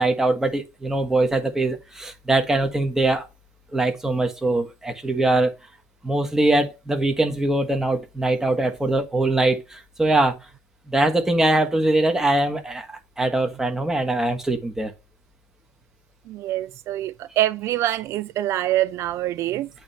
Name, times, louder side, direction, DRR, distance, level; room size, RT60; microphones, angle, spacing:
voice 1, 0.0-3.3 3.7-5.5 6.0-10.4 10.9-14.9, right 2 dB, 10° right, 1.5 m, -22 dB
voice 2, 16.3-19.7, right 14 dB, 60° right, 0.4 m, -25 dB
8.7 x 3.3 x 5.5 m
cardioid pair, 135°, 5 cm